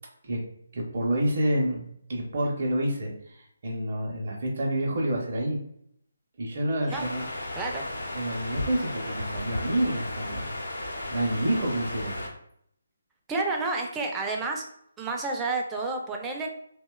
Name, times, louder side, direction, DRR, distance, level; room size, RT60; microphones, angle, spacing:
voice 1, 0.7-1.8 2.1-5.6 6.4-7.2 8.1-10.5 11.1-12.2, right 1 dB, 50° right, -1 dB, 0.6 m, -28 dB
sound 1, 6.9-12.3, left 1 dB, 80° left, 0.7 m, -34 dB
voice 2, 7.6-7.9 13.3-14.6 15.0-16.5, right 3 dB, 10° right, 1 dB, 0.4 m, -30 dB
2.7 x 2.1 x 2.2 m, 0.69 s
figure-of-eight pair, 150°, 0 cm